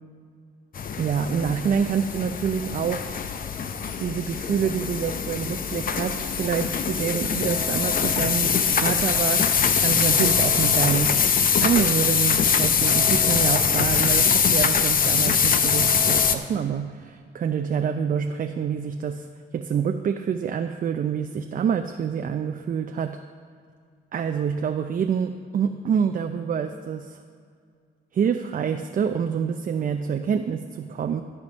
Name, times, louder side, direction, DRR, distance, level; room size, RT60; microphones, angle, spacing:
sound 1, 0.7-16.4, left 6 dB, 45° left, 0.7 m, -22 dB
voice 1, 1.0-3.2 4.0-11.2 11.6-19.3 19.5-23.2 24.1-27.2 28.1-31.2, right 7 dB, 45° right, 6 dB, 0.5 m, -27 dB
13.5 x 5.9 x 5.3 m, 2.1 s
cardioid pair, 90°, 20 cm